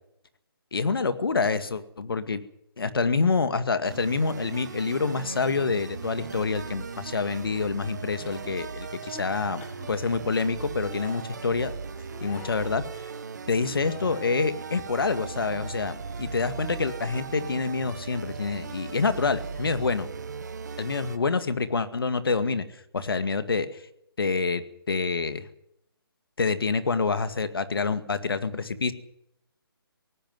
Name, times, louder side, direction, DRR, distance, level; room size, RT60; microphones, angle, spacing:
voice 1, 0.7-2.4 2.8-11.7 12.2-13.1 13.5-20.1 20.8-23.8 24.2-25.5 26.4-28.9, left 4 dB, 65° left, 11 dB, 2.1 m, -27 dB
sound 1, 3.8-21.2, right 5 dB, 45° right, 1.6 m, -38 dB
sound 2, 8.2-8.6 9.0-9.2 9.6-9.9 10.8-11.2 12.1-12.8 13.9-14.5 14.9-15.8 16.1-16.3 16.8-17.5 18.8-19.0, left 7 dB, 10° left, 1.5 m, -48 dB
18.5 x 15.5 x 9.4 m, 0.77 s
hypercardioid pair, 175°, 13 cm